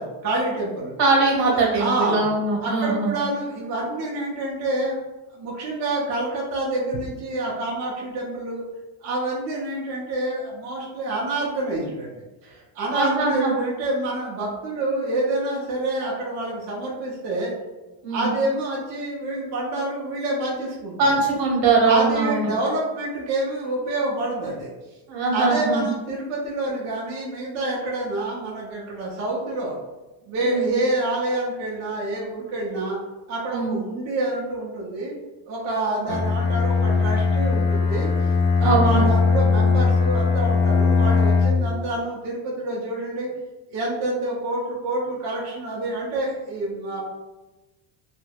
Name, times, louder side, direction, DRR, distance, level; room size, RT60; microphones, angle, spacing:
voice 1, 0.0-0.9 1.5-2.3 2.6-5.0 5.3-8.6 9.0-12.1 12.7-17.5 18.1-21.1 21.9-24.7 25.3-29.8 30.2-33.0 33.3-35.1 35.5-38.1 38.6-43.3 43.7-47.0, right 2 dB, 40° right, -4 dB, 0.4 m, -27 dB
voice 2, 1.0-3.1 12.9-13.5 18.0-18.3 21.0-22.5 25.1-25.8 30.4-30.7 33.5-33.8 38.6-39.0, right 3 dB, 65° right, -2 dB, 0.9 m, -21 dB
Bowed string instrument, 36.1-41.8, left 4 dB, 70° left, 0.5 m, -20 dB
2.3 x 2.0 x 3.2 m, 1.1 s
cardioid pair, 175°, 47 cm